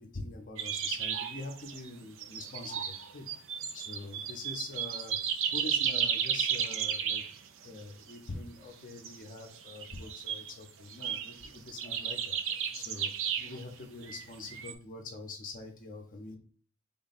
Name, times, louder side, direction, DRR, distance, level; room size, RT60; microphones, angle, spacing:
voice 1, 0.0-3.2 3.7-5.2 5.5-7.2 7.6-16.4, left 3 dB, 40° left, 3 dB, 0.6 m, -44 dB
sound 1, 0.6-1.9 2.2-7.8 8.1-8.3 8.9-10.5 10.9-13.6 14.0-14.7, right 8 dB, 60° right, 0.4 m, -34 dB
3.6 x 2.2 x 4.0 m, 0.43 s
head